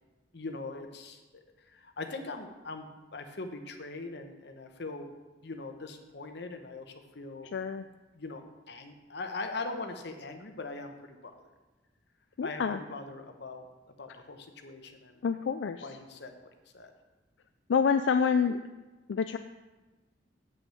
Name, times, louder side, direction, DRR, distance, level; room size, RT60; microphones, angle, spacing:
voice 1, 0.3-5.1 5.4-7.5 8.1-8.4 8.7-11.3 12.4-13.6 14.0-15.2 15.8-16.3 16.7-16.9, left 3 dB, 65° left, 6 dB, 1.0 m, -41 dB
voice 2, 7.5-7.9 12.4-12.8 15.2-15.9 17.7-18.6 19.1-19.4, left 6 dB, 85° left, 8 dB, 0.4 m, -27 dB
7.1 x 6.2 x 7.7 m, 1.2 s
head